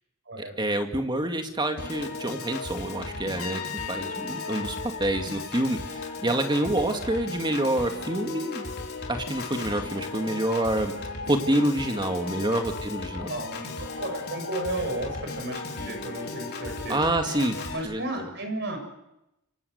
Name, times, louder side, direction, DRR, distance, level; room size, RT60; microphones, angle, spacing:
voice 1, 0.6-8.6 9.1-10.9 11.3-13.3 16.9-17.6 17.8-18.0, right 1 dB, 20° right, 5 dB, 2.3 m, -27 dB
Piano / Organ, 1.8-17.8, left 3 dB, 50° left, 4.8 m, -36 dB
Trumpet, 3.4-6.3, left 6 dB, 80° left, 3.3 m, -40 dB
voice 2, 6.6-7.0 13.3-17.0 17.7-18.8, right 1 dB, 55° right, 5 dB, 7.0 m, -33 dB
28.0 x 24.5 x 8.1 m, 0.90 s
head